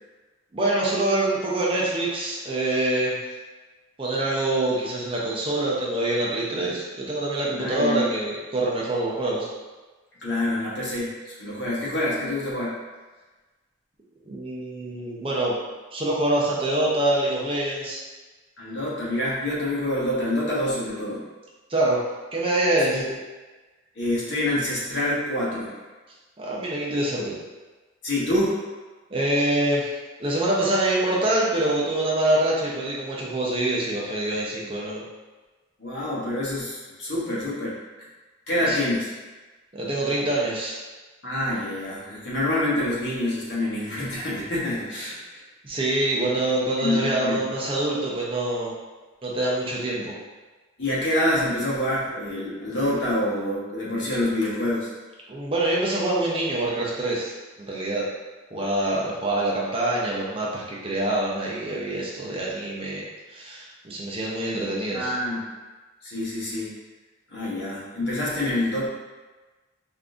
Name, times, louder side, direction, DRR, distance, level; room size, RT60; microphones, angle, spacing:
voice 1, 0.5-3.2 4.0-9.5 14.3-15.6 15.9-18.1 21.7-22.0 22.3-23.0 26.4-27.4 29.1-29.9 30.2-35.0 38.7-38.8 39.7-40.8 45.0-45.2 45.6-48.7 49.2-50.1 55.3-58.0 58.5-65.1, right 1 dB, 25° right, -4 dB, 0.6 m, -25 dB
voice 2, 7.6-8.0 10.2-12.8 18.6-21.2 22.9-23.0 23.9-25.7 28.0-28.6 35.8-37.8 38.5-39.1 41.2-45.4 46.8-47.4 50.8-54.9 64.9-65.5 66.0-66.7 67.3-68.9, left 1 dB, 60° left, -7 dB, 1.1 m, -26 dB
3.6 x 2.6 x 2.4 m, 1.2 s
head